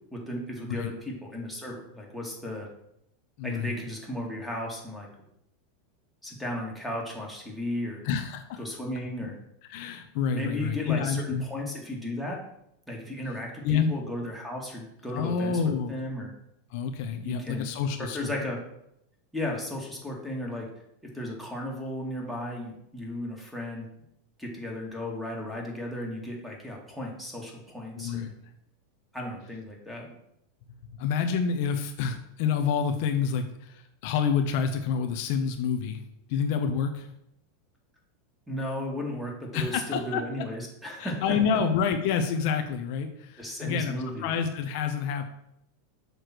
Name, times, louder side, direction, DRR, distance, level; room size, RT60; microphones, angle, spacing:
voice 1, 0.1-2.7 3.4-5.1 6.2-8.0 8.6-9.4 10.3-12.4 12.9-15.6 15.9-16.3 17.2-17.7 18.0-18.6 19.3-20.7 21.0-23.9 24.4-28.3 29.1-30.1 38.5-41.4 43.4-44.3, left 1 dB, ahead, -3 dB, 1.9 m, -35 dB
voice 2, 3.4-3.7 8.0-8.6 9.2-9.3 9.7-11.5 13.6-13.9 15.1-15.9 16.7-18.3 28.0-28.3 30.7-36.0 36.3-37.1 39.5-40.2 41.0-45.3, left 6 dB, 60° left, 5 dB, 0.7 m, -28 dB
6.7 x 3.1 x 6.0 m, 0.78 s
hypercardioid pair, 115°, 0 cm